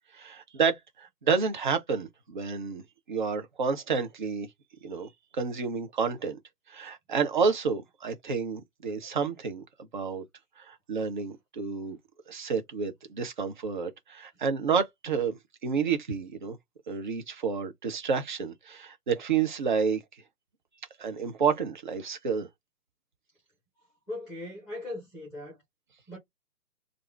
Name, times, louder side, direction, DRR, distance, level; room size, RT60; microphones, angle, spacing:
voice 1, 0.1-2.8 3.1-4.5 4.8-6.4 6.7-9.6 9.9-10.3 10.6-12.0 12.3-16.6 16.9-20.0 21.0-22.5, right 5 dB, 30° right, 0.7 m, -30 dB
voice 2, 24.1-25.6 26.1-26.2, left 1 dB, ahead, 1.0 m, -39 dB
3.3 x 2.5 x 3.2 m
hypercardioid pair, 150°, 47 cm